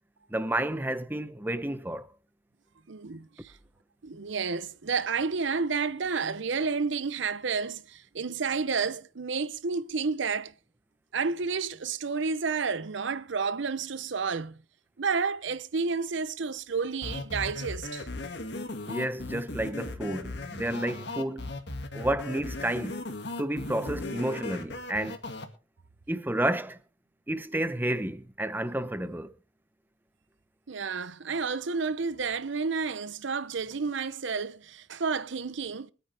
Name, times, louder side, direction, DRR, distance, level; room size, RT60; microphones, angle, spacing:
voice 1, 0.3-2.1 18.9-21.5 21.9-23.0 23.4-25.2 26.1-26.8 27.3-29.3, right 1 dB, 10° right, 0.7 m, -31 dB
voice 2, 2.9-3.5 4.0-10.5 11.1-14.6 15.0-18.1 30.7-35.9, right 5 dB, 65° right, 0.7 m, -30 dB
sound 1, 17.0-25.4, left 2 dB, 55° left, 2.1 m, -37 dB
23.5 x 8.8 x 3.4 m
head